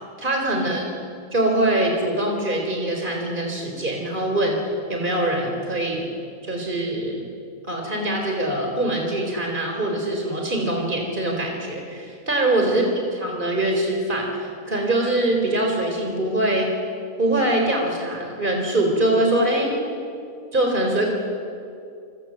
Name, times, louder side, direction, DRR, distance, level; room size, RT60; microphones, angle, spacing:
voice 1, 0.2-0.9 1.3-4.6 4.9-6.1 6.4-7.3 7.7-16.7 17.2-19.8 20.5-21.1, right 1 dB, 35° right, 1 dB, 4.4 m, -23 dB
27.5 x 26.0 x 7.7 m, 2.3 s
omnidirectional pair, 1.4 m